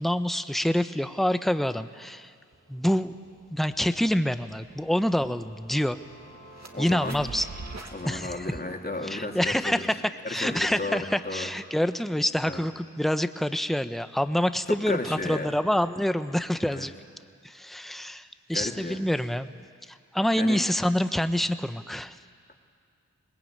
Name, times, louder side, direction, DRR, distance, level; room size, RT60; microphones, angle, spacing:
voice 1, 0.0-2.3 2.7-3.1 3.5-6.0 6.8-7.5 8.1-8.5 9.0-9.9 10.3-16.9 17.4-19.5 19.9-22.1, equal, ahead, 11 dB, 1.0 m, -27 dB
sound 1, 2.5-2.6 3.0-7.9, right 3 dB, 55° right, 2.6 m, -45 dB
voice 2, 6.7-7.2 7.9-9.9 10.2-11.5 12.4-12.6 14.7-15.5 16.7-16.9 18.5-19.0 20.4-20.6, left 2 dB, 30° left, 1 dB, 3.1 m, -33 dB
23.0 x 19.5 x 9.0 m, 2.1 s
cardioid pair, 40°, 31 cm